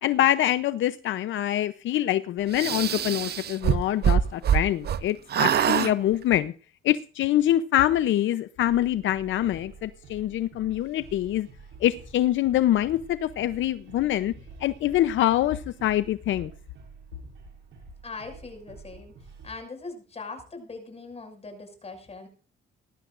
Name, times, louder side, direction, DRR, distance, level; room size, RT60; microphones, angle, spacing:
voice 1, 0.0-6.5 6.8-11.5 11.8-14.3 14.6-16.5, left 13 dB, 75° left, 0.7 m, -25 dB
sound 1, 2.5-5.0 5.3-5.9, right 9 dB, 55° right, 0.9 m, -23 dB
sound 2, 8.7-19.6, right 4 dB, 80° right, 6.9 m, -48 dB
voice 2, 18.0-22.3, left 3 dB, 30° left, 6.1 m, -41 dB
19.0 x 14.0 x 2.5 m
cardioid pair, 90°, 20 cm